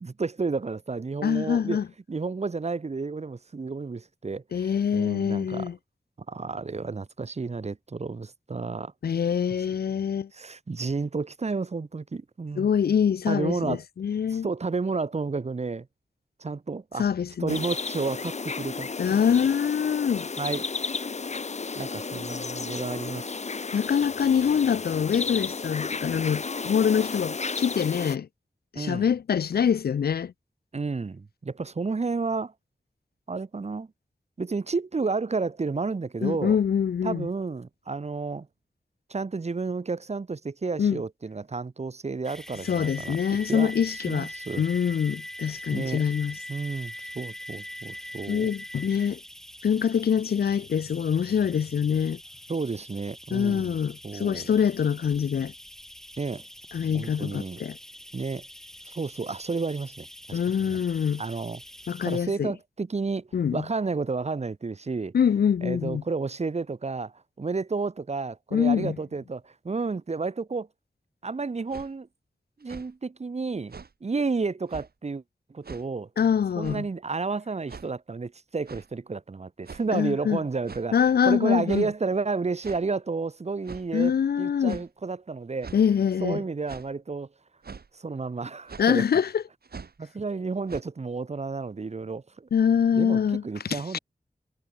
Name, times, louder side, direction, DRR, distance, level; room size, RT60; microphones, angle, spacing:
voice 1, 0.0-1.8 2.1-5.7 6.3-8.9 10.3-12.7 13.3-13.8 14.3-15.9 16.4-17.1 17.4-19.2 20.4-20.6 21.2-21.4 21.8-23.4 28.7-29.1 30.7-32.5 33.3-33.9 34.4-36.6 37.0-38.5 39.1-43.2 43.5-43.7 44.1-44.6 45.7-46.0 46.5-48.5 52.5-53.8 54.0-54.5 56.2-56.4 56.9-57.6 58.1-58.4 58.8-60.8 61.2-61.6 62.1-65.2 65.6-70.7 71.2-72.1 72.6-73.7 74.0-75.2 75.5-76.1 76.6-80.9 81.2-85.7 86.2-87.3 87.9-89.0 90.0-92.5 92.9-94.0, right 4 dB, 45° right, 0.8 m, -31 dB
voice 2, 1.2-1.8 4.5-5.8 9.0-10.3 12.6-14.5 17.0-17.6 19.0-20.3 23.7-28.3 28.7-30.3 36.2-37.3 40.8-41.0 42.7-44.3 44.6-46.4 48.3-49.2 49.6-52.2 53.3-55.5 56.7-57.8 60.3-61.2 61.9-62.5 63.3-63.6 65.1-66.0 68.5-69.0 76.2-76.9 79.9-80.4 80.9-81.9 83.9-84.8 85.7-86.4 88.8-89.4 92.5-93.4 93.7-93.8, left 7 dB, 85° left, 0.4 m, -24 dB
sound 1, 17.5-28.2, left 4 dB, 45° left, 0.8 m, -33 dB
sound 2, 42.2-62.2, equal, 5° left, 0.4 m, -43 dB
sound 3, 71.7-71.9 72.6-72.9 73.7-73.9 74.7-74.9 75.6-75.9 76.6-76.9 77.7-77.9 78.6-78.9 79.6-80.0 80.6-80.9 81.7-81.9 82.6-82.8 83.6-83.9 84.7-84.9 85.6-85.8 86.7-86.9 87.6-87.9 88.7-88.9 89.6-90.0 90.7-90.8, right 5 dB, 80° right, 1.8 m, -42 dB
wide cardioid pair, 85°, 16 cm